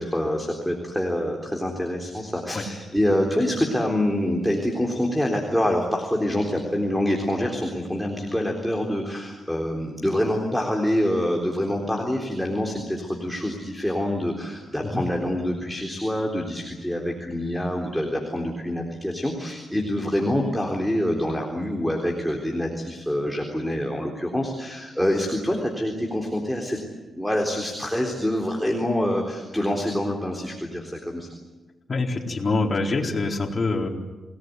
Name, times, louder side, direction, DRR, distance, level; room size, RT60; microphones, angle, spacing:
voice 1, 0.0-26.8 27.1-31.3, left 1 dB, ahead, 0 dB, 3.8 m, -26 dB
voice 2, 31.9-33.9, left 3 dB, 35° left, 0 dB, 4.2 m, -25 dB
27.5 x 19.0 x 9.4 m, 1.2 s
cardioid pair, 100°, 0 cm